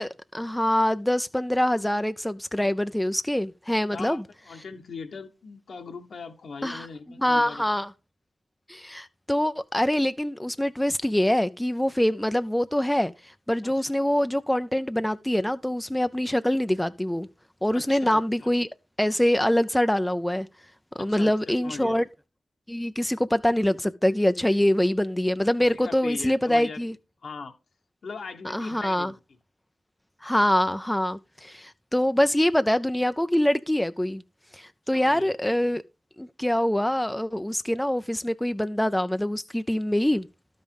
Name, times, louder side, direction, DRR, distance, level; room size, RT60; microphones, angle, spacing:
voice 1, 0.0-4.2 6.6-6.9 7.2-7.9 8.7-17.3 17.6-18.7 19.0-20.5 21.0-22.0 22.7-26.9 28.4-29.1 30.2-34.2 34.5-35.8 36.2-40.3, left 1 dB, 10° left, 0.4 m, -24 dB
voice 2, 3.9-7.6 13.6-13.8 17.7-18.5 21.0-22.0 25.8-26.8 27.2-27.5 28.0-29.2 34.9-35.3, left 4 dB, 70° left, 1.2 m, -40 dB
12.0 x 5.2 x 3.7 m
supercardioid pair, 45°, 0 cm